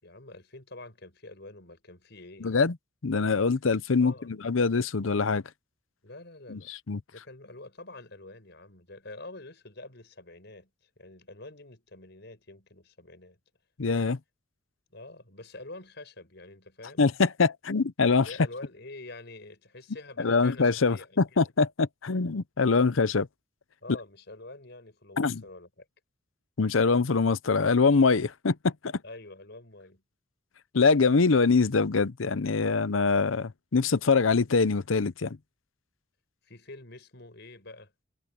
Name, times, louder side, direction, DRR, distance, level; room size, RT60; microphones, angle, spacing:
voice 1, 0.0-2.6 4.0-4.3 6.0-6.7 7.1-10.7 11.0-13.4 14.9-17.0 18.2-21.5 23.8-25.9 29.0-30.0 36.4-37.9, left 2 dB, 60° left, 6.3 m, -46 dB
voice 2, 2.4-2.7 3.0-5.4 6.5-7.0 13.8-14.2 17.0-18.3 20.2-23.3 25.2-25.4 26.6-28.9 30.7-35.4, left 4 dB, 85° left, 0.7 m, -24 dB
head